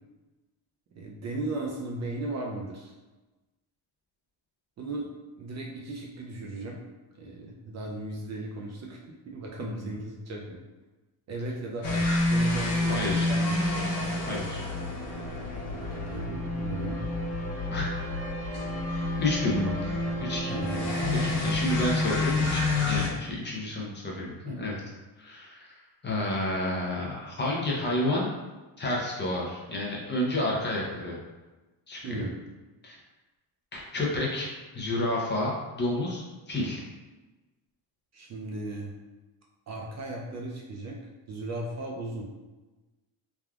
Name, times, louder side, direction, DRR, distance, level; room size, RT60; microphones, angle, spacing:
voice 1, 1.0-2.9 4.8-5.1 5.4-6.8 7.2-10.6 11.3-13.8 15.7-17.1 20.5-20.8 21.2-21.6 24.5-24.7 32.0-32.4 38.1-39.0 39.7-41.0 41.3-42.3, right 2 dB, 40° right, -1 dB, 0.4 m, -36 dB
sound 1, 11.8-23.1, left 2 dB, 55° left, 0.9 m, -28 dB
voice 2, 12.9-13.3 14.3-14.6 17.7-17.9 19.2-19.9 20.2-20.7 21.1-24.8 25.2-28.3 28.8-31.2 31.9-32.2 32.8-33.0 33.7-36.8, left 1 dB, 25° left, -3 dB, 0.5 m, -30 dB
3.4 x 2.3 x 2.3 m, 1.2 s
cardioid pair, 115°, 44 cm